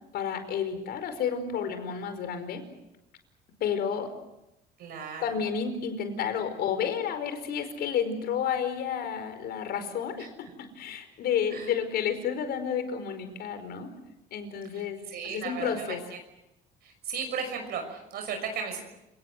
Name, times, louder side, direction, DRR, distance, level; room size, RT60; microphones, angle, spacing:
voice 1, 0.1-2.6 3.6-4.1 5.2-13.9 14.3-15.0 15.3-16.0, left 7 dB, 70° left, 8 dB, 5.0 m, -31 dB
voice 2, 4.8-5.4 10.2-10.3 11.5-11.7 14.7-16.0 16.8-18.8, right 6 dB, 70° right, 4 dB, 6.0 m, -36 dB
29.5 x 19.5 x 7.9 m, 0.92 s
cardioid pair, 110°, 17 cm